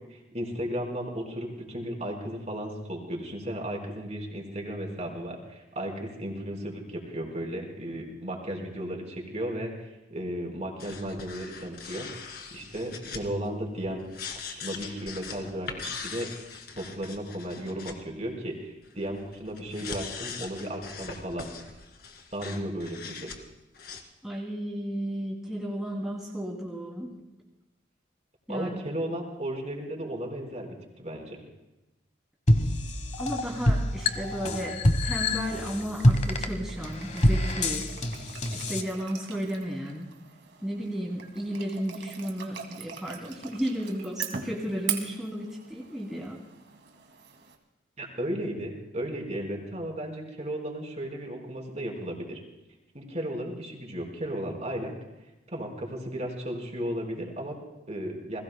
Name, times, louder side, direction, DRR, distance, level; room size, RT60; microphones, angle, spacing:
voice 1, 0.1-9.7 10.1-12.1 12.5-14.0 14.5-16.3 16.8-21.5 22.3-23.3 28.5-31.4 48.0-52.4 52.9-54.9 55.5-58.4, right 1 dB, 35° right, 1 dB, 4.3 m, -35 dB
sound 1, 10.8-17.9 18.9-23.4 23.7-24.0, left 5 dB, 55° left, 2.3 m, -41 dB
voice 2, 24.2-27.1 28.5-28.8 33.2-37.9 38.5-40.1 40.6-46.4, equal, ahead, -4 dB, 2.7 m, -33 dB
sound 2, 32.5-38.8, left 1 dB, 35° left, 1.2 m, -26 dB
sound 3, 34.9-47.5, right 8 dB, 85° right, 2.3 m, -42 dB
29.5 x 21.0 x 2.2 m, 1.0 s
head